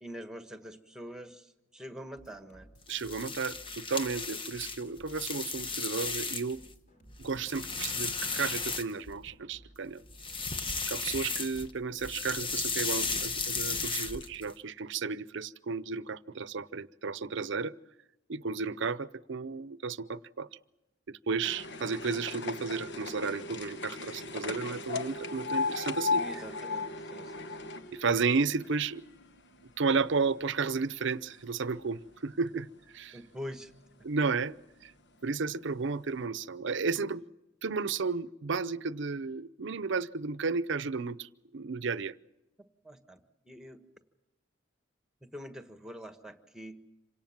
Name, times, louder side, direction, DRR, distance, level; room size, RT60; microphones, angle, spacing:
voice 1, 0.0-2.7 26.1-27.9 33.1-33.7 42.8-43.8 45.2-46.8, equal, 5° right, 8 dB, 1.4 m, -45 dB
sound 1, 2.2-14.1, right 1 dB, 45° left, 5.1 m, -57 dB
sound 2, 2.8-6.7 7.1-9.3 10.1-11.7 12.0-14.5, left 4 dB, 25° left, 1.1 m, -35 dB
voice 2, 2.9-6.6 7.2-10.0 10.9-17.7 18.3-20.5 21.1-26.2 27.9-29.0 29.8-32.7 32.9-33.2 34.0-34.6 34.8-34.9 35.2-37.2 37.6-42.1, right 4 dB, 65° right, 17 dB, 0.7 m, -33 dB
sound 3, 21.4-29.7 30.0-30.9 31.6-31.7 32.0-32.1 32.4-32.5 33.3-33.5 34.0-34.1 34.8-34.9 35.4-35.5, left 4 dB, 60° left, 1.1 m, -36 dB
26.5 x 18.0 x 7.4 m, 0.99 s
head